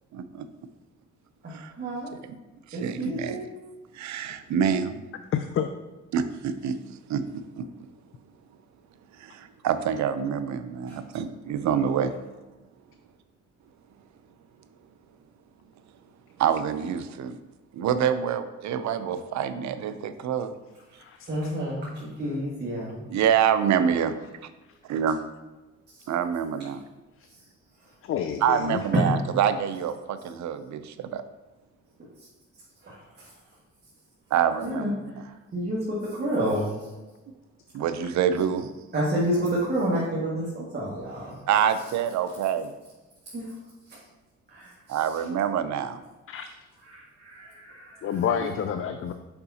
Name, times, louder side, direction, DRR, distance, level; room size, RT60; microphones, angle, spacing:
voice 1, 0.1-0.5 1.5-1.7 2.7-3.4 3.9-5.0 6.1-7.2 7.6-7.7 9.2-12.1 16.4-17.4 17.7-20.5 23.1-24.2 24.9-25.2 26.1-26.8 28.4-31.2 34.3-34.9 37.7-38.7 41.5-42.7 44.9-46.0, right 8 dB, 65° right, 11 dB, 0.6 m, -26 dB
voice 2, 1.4-2.1 2.7-3.5 10.9-11.0 21.3-23.0 26.0-26.1 28.9-29.1 32.8-33.3 34.6-34.9 35.5-36.9 38.9-41.4 43.3-43.5 44.5-45.2 46.9-48.2, right 1 dB, 35° right, -6 dB, 1.8 m, -29 dB
voice 3, 5.3-5.7 21.0-21.3 23.7-23.8 28.0-28.8 46.3-46.5 48.0-49.1, left 8 dB, 45° left, 8 dB, 0.4 m, -28 dB
6.8 x 5.6 x 2.8 m, 1.2 s
cardioid pair, 90°, 30 cm